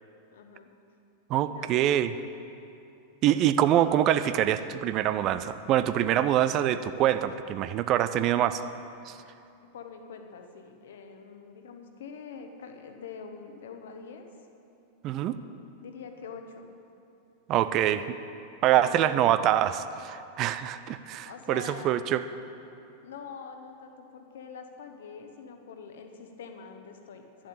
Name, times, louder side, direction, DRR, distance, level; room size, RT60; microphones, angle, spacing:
voice 1, 0.3-0.7 1.4-1.9 9.7-14.2 15.8-16.7 17.8-17.9 18.8-19.3 21.3-22.1 23.0-27.5, left 6 dB, 60° left, 5 dB, 1.1 m, -44 dB
voice 2, 1.3-2.1 3.2-8.6 9.1-9.2 15.0-15.4 17.5-18.0 18.6-22.2, right 11 dB, 35° right, 12 dB, 0.4 m, -25 dB
11.0 x 7.2 x 8.5 m, 2.7 s
figure-of-eight pair, 90°, 0 cm